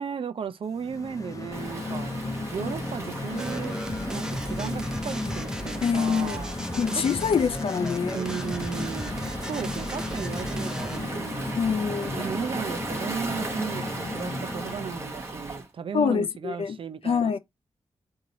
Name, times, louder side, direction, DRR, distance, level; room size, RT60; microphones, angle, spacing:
voice 1, 0.0-2.1 2.5-6.5 6.9-7.0 8.1-11.5 12.1-17.4, right 6 dB, 55° right, 0.6 m, -35 dB
sound 1, 0.7-15.2, left 2 dB, 30° left, 0.7 m, -35 dB
Waves surf, 1.5-15.7, right 2 dB, 25° right, 1.0 m, -37 dB
sound 2, 3.4-11.2, right 1 dB, 5° right, 0.4 m, -36 dB
voice 2, 5.8-6.4 6.8-8.2 11.6-12.2 15.9-16.8 17.0-17.4, left 6 dB, 60° left, 0.4 m, -25 dB
4.7 x 2.8 x 3.9 m
wide cardioid pair, 170°, 11 cm